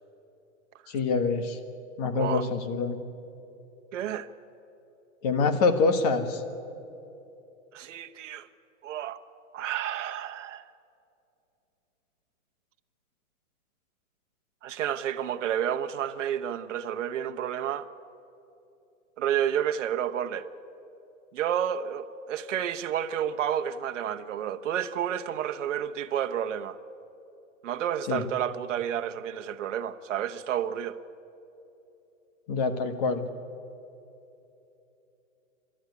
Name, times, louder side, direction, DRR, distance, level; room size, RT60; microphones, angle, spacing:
voice 1, 0.9-1.6 2.0-3.0 5.2-6.4 28.1-28.2 32.5-33.3, left 4 dB, 30° left, 1.4 m, -25 dB
voice 2, 3.9-4.3 7.7-8.5 8.8-9.2 9.5-10.6 14.6-17.9 19.2-20.5 21.3-26.8 27.6-31.0, right 9 dB, 65° right, 1.1 m, -30 dB
28.0 x 13.0 x 9.6 m
hypercardioid pair, 170°, 41 cm